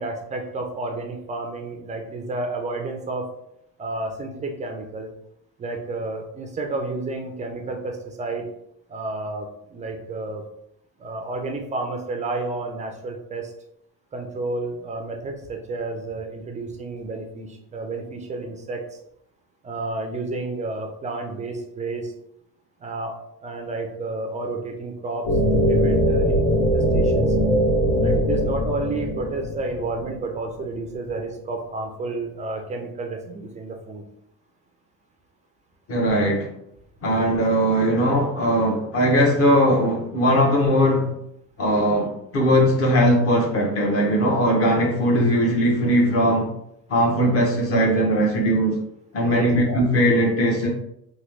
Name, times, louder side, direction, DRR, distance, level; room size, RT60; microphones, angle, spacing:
voice 1, 0.0-3.3 3.8-5.1 5.6-8.5 8.9-10.4 11.0-13.5 14.1-19.0 19.6-22.1 22.8-23.2 23.4-27.4 28.0-34.0 49.3-49.5, right 2 dB, 20° right, 3 dB, 0.3 m, -31 dB
sound 1, 25.3-30.4, equal, 70° left, 1.1 m, -21 dB
voice 2, 35.9-36.5 37.0-41.1 41.6-46.5 46.9-48.8 49.1-50.7, equal, 40° left, 0 dB, 0.9 m, -19 dB
3.0 x 2.3 x 3.2 m, 0.76 s
cardioid pair, 130°, 37 cm